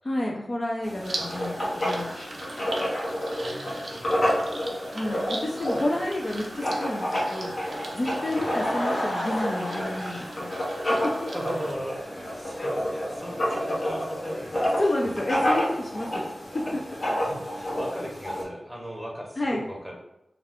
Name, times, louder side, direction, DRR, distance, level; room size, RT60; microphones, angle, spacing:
voice 1, 0.0-2.1 4.9-7.5 7.9-10.6 11.0-11.3 12.5-12.7 14.8-16.6 19.4-19.6, left 1 dB, 40° left, -1 dB, 0.4 m, -30 dB
Writing, 0.8-18.4, equal, 65° left, 0.8 m, -29 dB
sound 1, 1.0-11.7, right 2 dB, 65° right, 0.5 m, -40 dB
voice 2, 3.4-4.5 8.3-8.5 11.3-14.7 16.6-16.7 17.1-20.0, equal, 5° right, -1 dB, 0.7 m, -38 dB
Laughter / Crowd, 8.0-11.3 11.6-11.7 12.3-12.4 12.5-12.6, left 1 dB, 85° left, 1.1 m, -33 dB
2.4 x 2.2 x 3.4 m, 0.89 s
wide cardioid pair, 70°, 0 cm